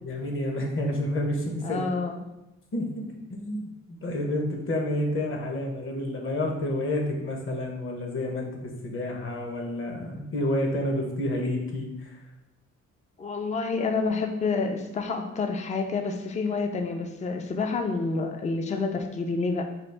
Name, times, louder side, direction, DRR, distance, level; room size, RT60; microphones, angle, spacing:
voice 1, 0.0-1.9 2.7-12.2, left 1 dB, 45° left, 2 dB, 0.8 m, -29 dB
voice 2, 1.6-2.2 13.2-19.6, left 4 dB, 25° left, 5 dB, 0.4 m, -28 dB
4.0 x 2.4 x 3.4 m, 0.93 s
cardioid pair, 90°, 30 cm